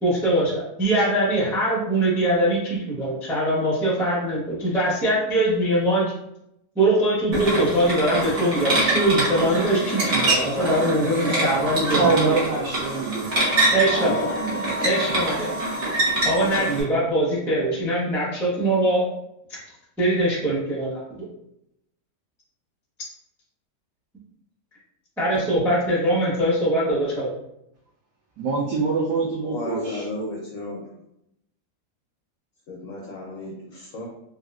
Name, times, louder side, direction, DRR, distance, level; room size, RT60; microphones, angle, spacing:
voice 1, 0.0-6.1 6.7-12.4 13.7-14.2 14.8-15.5 16.2-19.0 19.5-19.6 20.0-21.3 25.2-27.3, right 1 dB, 5° left, -6 dB, 0.3 m, -22 dB
sound 1, 7.3-16.8, right 2 dB, 40° right, 1.0 m, -25 dB
voice 2, 11.9-13.3 13.8-14.8 28.4-30.1, right 4 dB, 75° right, -3 dB, 1.1 m, -25 dB
sound 2, 13.3-16.6, left 1 dB, 60° right, 0.6 m, -34 dB
voice 3, 29.4-30.8 32.7-34.1, left 1 dB, 65° left, -3 dB, 0.8 m, -33 dB
3.4 x 2.4 x 2.3 m, 0.80 s
omnidirectional pair, 1.9 m